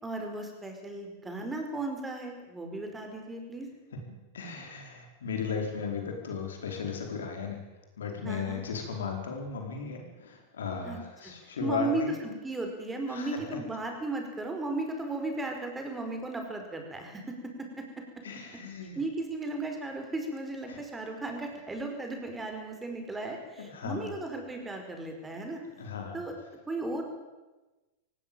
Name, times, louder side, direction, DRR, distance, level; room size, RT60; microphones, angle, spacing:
voice 1, 0.0-3.7 8.2-8.6 10.8-11.0 11.6-17.8 18.9-25.6 26.1-26.3 26.7-27.0, right 2 dB, 15° right, 4 dB, 5.1 m, -35 dB
voice 2, 4.3-7.6 8.0-12.2 13.1-13.6 18.2-19.0 20.7-20.8 23.7-24.1 25.8-26.2, left 5 dB, 80° left, 3 dB, 4.8 m, -36 dB
18.0 x 17.5 x 9.0 m, 1.1 s
hypercardioid pair, 105°, 0 cm